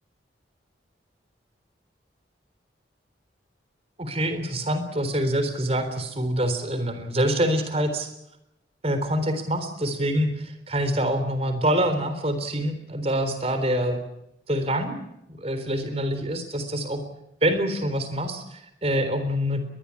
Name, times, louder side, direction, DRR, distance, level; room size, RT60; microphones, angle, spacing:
voice 1, 4.0-8.1 8.8-14.0 14.5-15.0 15.4-17.0 17.4-19.6, equal, 35° right, 9 dB, 3.8 m, -25 dB
21.5 x 21.5 x 8.5 m, 0.83 s
head